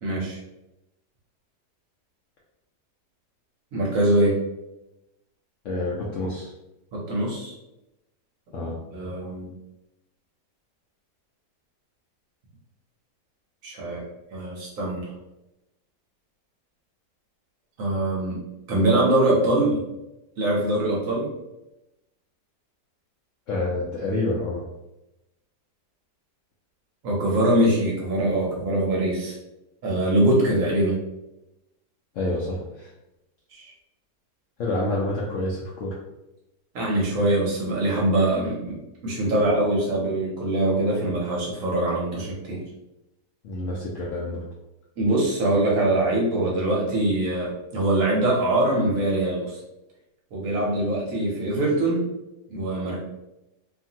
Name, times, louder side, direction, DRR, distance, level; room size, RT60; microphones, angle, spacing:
voice 1, 0.0-0.4 3.7-4.4 6.9-7.5 8.6-9.5 13.6-14.0 14.3-15.1 17.8-18.4 18.7-19.8 20.4-21.3 27.0-29.3 29.8-31.0 33.5-33.7 36.7-38.8 39.0-42.6 45.0-49.6 50.3-52.1 52.5-53.0, right 1 dB, 65° right, -3 dB, 1.0 m, -23 dB
voice 2, 5.6-6.5 8.5-8.8 23.5-24.6 32.1-32.9 34.6-35.9 43.4-44.4, left 2 dB, 70° left, -4 dB, 0.7 m, -28 dB
2.7 x 2.5 x 2.7 m, 0.93 s
omnidirectional pair, 1.8 m